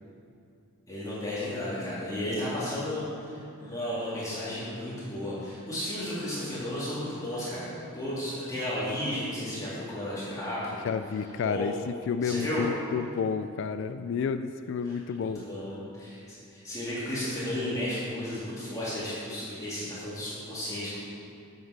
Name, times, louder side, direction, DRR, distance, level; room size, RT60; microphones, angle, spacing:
voice 1, 0.9-10.8 11.4-11.7 12.2-12.6 14.8-21.0, left 1 dB, 15° left, -10 dB, 2.5 m, -34 dB
voice 2, 10.8-15.4, left 6 dB, 60° left, 11 dB, 0.3 m, -30 dB
7.8 x 7.3 x 6.4 m, 2.5 s
head